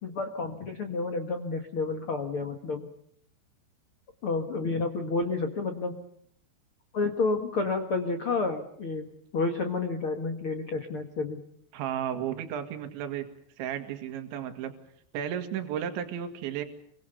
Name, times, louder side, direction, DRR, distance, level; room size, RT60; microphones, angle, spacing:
voice 1, 0.0-2.9 4.2-6.0 6.9-9.1 9.3-11.4, left 3 dB, 90° left, 6 dB, 1.1 m, -30 dB
voice 2, 11.7-13.3 13.6-14.7 15.1-16.7, right 9 dB, 75° right, 6 dB, 4.1 m, -33 dB
27.0 x 24.0 x 6.8 m, 0.68 s
omnidirectional pair, 5.4 m